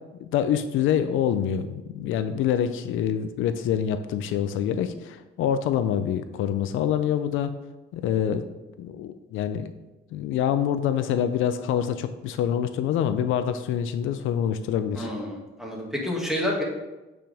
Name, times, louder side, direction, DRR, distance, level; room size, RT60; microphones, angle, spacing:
voice 1, 0.2-7.5 7.9-8.5 8.8-9.7 10.1-15.1, left 9 dB, 85° left, 10 dB, 0.5 m, -26 dB
voice 2, 15.0-16.6, left 1 dB, ahead, -2 dB, 2.2 m, -29 dB
8.6 x 5.2 x 3.5 m, 1.1 s
cardioid pair, 90°, 20 cm